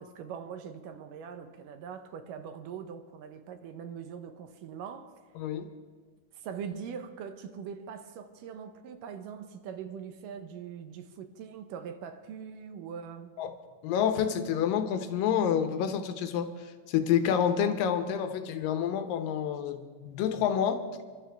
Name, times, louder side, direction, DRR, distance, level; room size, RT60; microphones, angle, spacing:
voice 1, 0.0-5.1 6.3-13.4, right 7 dB, 75° right, 2.4 m, -42 dB
voice 2, 5.4-5.7 13.4-13.5 13.8-20.8, left 8 dB, 80° left, 2.6 m, -28 dB
29.5 x 12.0 x 3.4 m
omnidirectional pair, 4.0 m